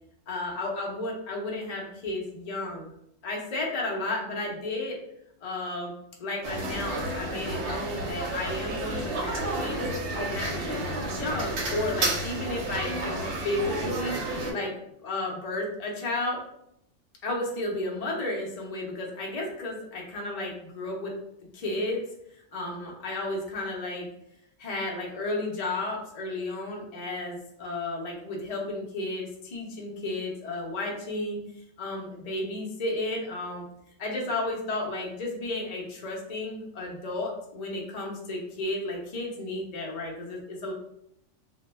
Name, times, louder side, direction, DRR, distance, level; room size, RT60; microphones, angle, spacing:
voice 1, 0.3-2.9 3.2-5.0 5.4-5.9 6.2-9.8 10.2-14.7 15.0-16.4 17.2-21.1 21.5-22.0 22.5-24.1 24.6-31.4 31.8-33.6 34.0-40.7, left 2 dB, 55° left, -1 dB, 0.4 m, -33 dB
sound 1, 6.4-14.5, right 2 dB, 70° right, 0.8 m, -31 dB
2.1 x 2.1 x 3.1 m, 0.76 s
omnidirectional pair, 1.3 m